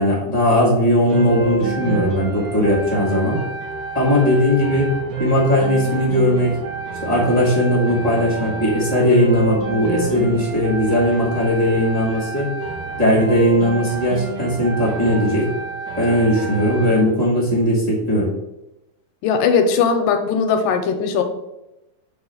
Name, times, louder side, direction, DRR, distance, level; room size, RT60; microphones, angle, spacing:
voice 1, 0.0-3.4 3.9-4.9 5.2-6.5 7.0-12.5 13.0-15.4 16.0-18.3, equal, 35° left, -5 dB, 0.6 m, -18 dB
sound 1, 1.1-17.1, right 4 dB, 70° right, 2.7 m, -28 dB
voice 2, 19.2-21.2, left 6 dB, 80° left, 6 dB, 2.1 m, -18 dB
6.4 x 2.9 x 5.5 m, 0.93 s
omnidirectional pair, 3.9 m